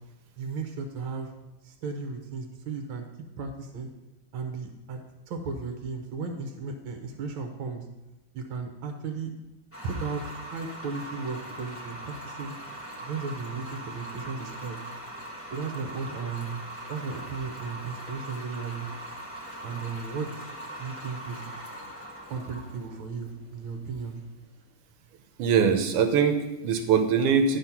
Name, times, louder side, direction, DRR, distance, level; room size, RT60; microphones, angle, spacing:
voice 1, 0.4-1.3 1.6-3.1 3.4-3.9 4.3-5.0 5.3-7.8 8.3-9.3 9.8-12.5 13.0-14.8 15.5-16.6 16.9-18.9 19.6-20.5 20.8-21.4 22.3-24.2, right 4 dB, 70° right, 4 dB, 1.7 m, -35 dB
sound 1, 9.7-24.7, right 1 dB, 20° left, 0.3 m, -41 dB
voice 2, 25.4-27.6, right 6 dB, 85° right, 7 dB, 1.8 m, -22 dB
11.0 x 4.3 x 5.8 m, 1.0 s
omnidirectional pair, 2.4 m